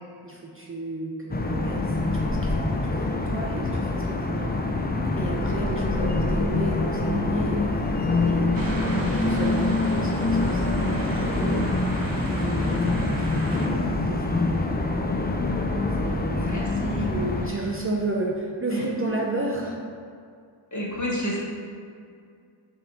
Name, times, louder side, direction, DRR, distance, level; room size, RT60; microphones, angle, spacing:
voice 1, 0.2-4.8 5.2-7.9 8.3-11.7 12.2-14.9 15.9-19.8, right 2 dB, 30° right, -2 dB, 0.5 m, -33 dB
sound 1, 1.3-17.5, left 2 dB, 20° left, 0.4 m, -25 dB
sound 2, 8.5-13.7, right 1 dB, 45° right, 1.0 m, -37 dB
voice 2, 16.3-17.1 18.7-19.1 20.7-21.4, equal, 35° left, -3 dB, 1.2 m, -30 dB
6.2 x 3.6 x 4.6 m, 2.3 s
wide cardioid pair, 95°, 48 cm